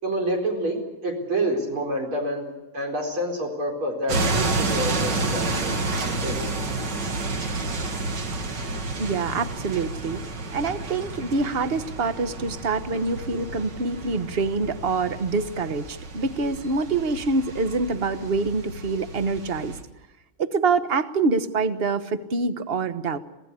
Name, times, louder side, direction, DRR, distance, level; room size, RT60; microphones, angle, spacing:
voice 1, 0.0-5.9 6.2-6.5, right 1 dB, 75° right, 1 dB, 5.2 m, -28 dB
sound 1, 4.1-19.8, right 3 dB, 55° right, 2.6 m, -30 dB
voice 2, 9.0-10.2 10.5-19.7 20.4-23.2, right 4 dB, 35° right, 11 dB, 1.1 m, -25 dB
26.0 x 17.0 x 8.3 m, 1.0 s
omnidirectional pair, 2.3 m